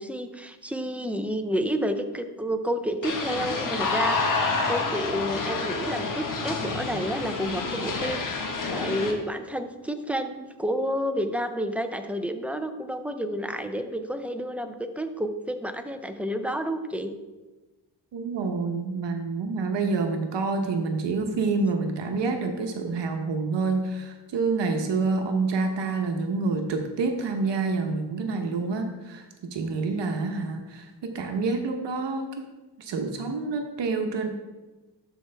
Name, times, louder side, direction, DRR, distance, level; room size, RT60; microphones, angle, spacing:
voice 1, 0.0-17.1, equal, 5° right, 7 dB, 0.5 m, -30 dB
sound 1, 3.0-9.1, left 4 dB, 45° left, 1.2 m, -28 dB
voice 2, 18.1-32.3 32.8-34.3, right 4 dB, 65° right, 4 dB, 1.0 m, -27 dB
12.0 x 4.6 x 3.4 m, 1.2 s
cardioid pair, 115°, 46 cm